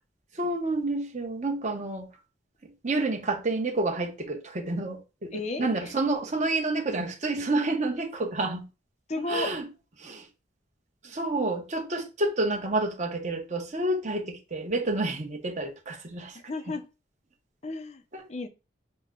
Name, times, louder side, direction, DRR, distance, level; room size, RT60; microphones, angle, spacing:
voice 1, 0.3-2.1 2.8-8.7 9.2-9.7 10.0-10.3 11.0-16.4 18.1-18.2, right 2 dB, 40° right, 1.0 m, -29 dB
voice 2, 5.3-5.9 9.1-9.6 16.5-16.9 17.6-18.0 18.3-18.5, left 3 dB, 35° left, 0.5 m, -33 dB
6.5 x 2.2 x 3.7 m
head